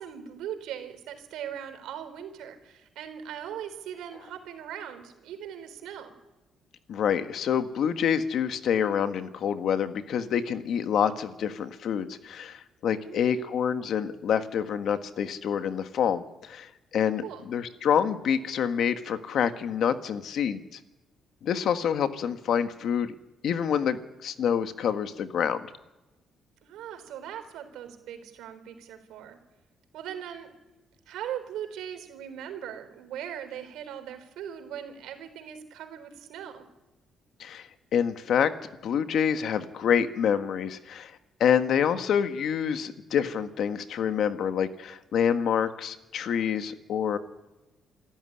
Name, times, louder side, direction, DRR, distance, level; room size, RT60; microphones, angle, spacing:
voice 1, 0.0-6.2 13.0-13.4 17.2-17.4 26.6-29.4 29.9-30.5 31.1-36.7, right 9 dB, 90° right, 8 dB, 3.9 m, -40 dB
voice 2, 6.9-20.8 21.4-23.1 23.4-25.7 37.4-38.5 38.8-41.1 41.4-47.2, left 8 dB, 60° left, 9 dB, 1.5 m, -27 dB
28.0 x 13.5 x 9.9 m, 1.0 s
cardioid pair, 150°, 0 cm